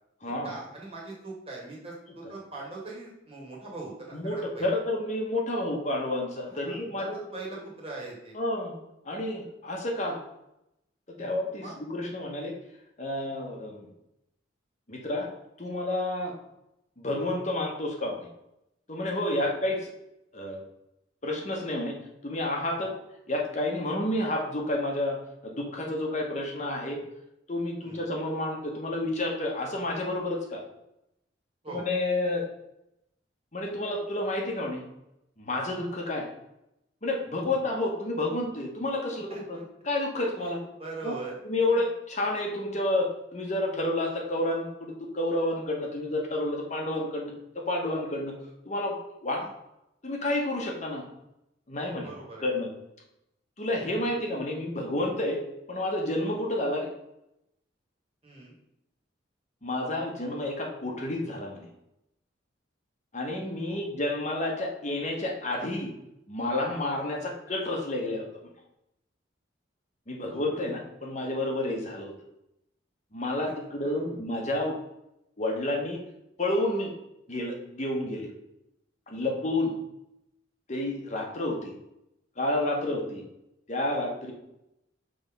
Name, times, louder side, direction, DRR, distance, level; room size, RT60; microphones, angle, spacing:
voice 1, 0.4-4.7 6.5-6.8 7.1-8.4 11.2-11.8 19.3-19.5 22.7-22.9 27.8-28.1 31.6-31.9 37.5-37.6 39.3-39.6 40.4-41.4 41.7-41.9 49.4-49.5 52.0-52.5 58.2-58.5 63.7-63.9 70.3-70.5 73.8-74.0 79.2-79.4, right 3 dB, 30° right, -4 dB, 1.9 m, -42 dB
voice 2, 4.1-7.2 8.3-8.8 9.0-10.2 11.1-12.5 13.0-13.9 14.9-15.3 15.6-16.3 17.0-18.3 18.9-19.9 20.3-20.6 21.2-21.9 22.2-22.9 23.3-25.2 25.4-27.0 27.5-30.6 31.7-32.5 33.5-34.8 35.4-36.3 37.0-39.6 39.8-40.6 41.0-41.2 41.5-48.3 48.6-48.9 49.2-49.4 50.0-51.0 51.7-52.1 52.4-52.7 53.6-55.4 55.7-56.9 59.6-61.7 63.1-65.9 66.3-68.3 70.1-72.1 73.1-74.8 75.4-76.0 76.4-76.9 77.3-78.3 79.1-79.7 80.7-81.7 82.4-83.2 83.7-84.3, left 1 dB, 40° left, 0 dB, 1.1 m, -30 dB
6.2 x 3.5 x 5.2 m, 0.84 s
head